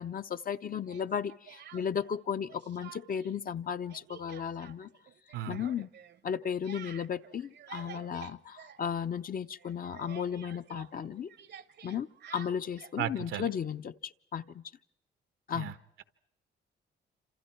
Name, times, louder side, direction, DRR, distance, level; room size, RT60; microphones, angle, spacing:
voice 1, 0.0-4.9 5.5-5.9 6.2-11.3 11.8-14.6 15.5-15.7, left 7 dB, 45° left, 10 dB, 0.8 m, -35 dB
Speech, 0.9-2.2 2.5-3.4 3.6-9.3 9.6-13.0, right 8 dB, 60° right, 0.9 m, -51 dB
voice 2, 13.0-13.5 15.5-15.7, right 11 dB, 90° right, 12 dB, 1.2 m, -35 dB
27.5 x 27.0 x 4.6 m, 0.77 s
cardioid pair, 90°, 20 cm